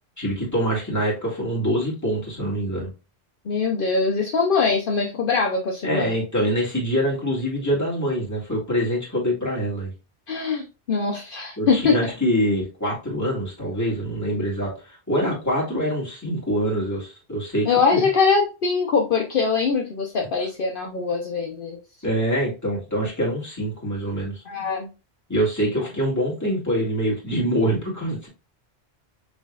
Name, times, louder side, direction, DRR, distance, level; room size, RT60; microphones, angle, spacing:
voice 1, 0.2-2.9 5.8-9.9 11.6-14.7 15.1-18.1 22.0-24.4 25.3-28.3, equal, 15° left, -4 dB, 2.0 m, -25 dB
voice 2, 3.5-6.1 10.3-12.1 17.7-21.8 24.5-24.9, left 5 dB, 60° left, 1 dB, 0.9 m, -22 dB
6.1 x 3.5 x 2.4 m, 0.30 s
omnidirectional pair, 1.1 m